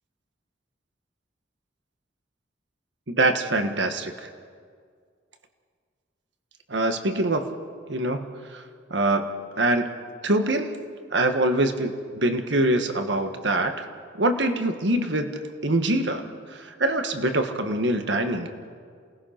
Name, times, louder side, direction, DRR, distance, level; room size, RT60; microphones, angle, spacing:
voice 1, 3.1-4.3 6.7-7.5 7.9-8.6 8.9-9.3 9.6-9.9 10.2-10.7 11.1-13.9 14.2-18.5, right 1 dB, 65° right, 7 dB, 1.5 m, -24 dB
28.0 x 18.0 x 5.9 m, 2.1 s
head